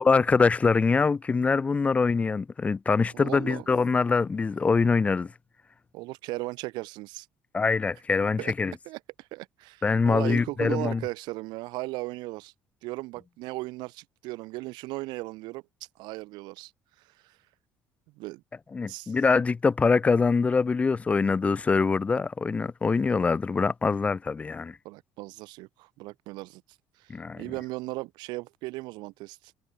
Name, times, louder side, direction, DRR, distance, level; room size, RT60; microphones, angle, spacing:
voice 1, 0.0-5.3 7.5-8.7 9.8-11.0 18.7-24.8 27.1-27.4, left 4 dB, 20° left, 1.2 m, -24 dB
voice 2, 3.1-3.7 5.9-7.3 8.4-8.5 8.9-12.5 12.8-15.6 16.0-16.7 17.0-17.4 18.1-18.4 18.9-19.2 24.8-26.6 27.0-29.5, right 21 dB, 90° right, 2.5 m, -37 dB
cardioid pair, 165°, 7 cm